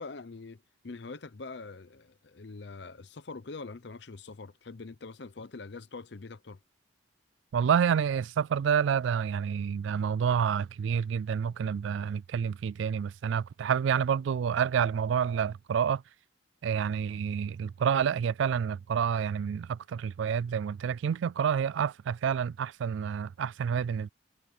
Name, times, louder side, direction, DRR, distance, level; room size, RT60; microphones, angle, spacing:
voice 1, 0.0-6.6, left 3 dB, 60° left, 0.7 m, -44 dB
voice 2, 7.5-16.0 16.6-24.1, right 7 dB, 70° right, 0.3 m, -28 dB
head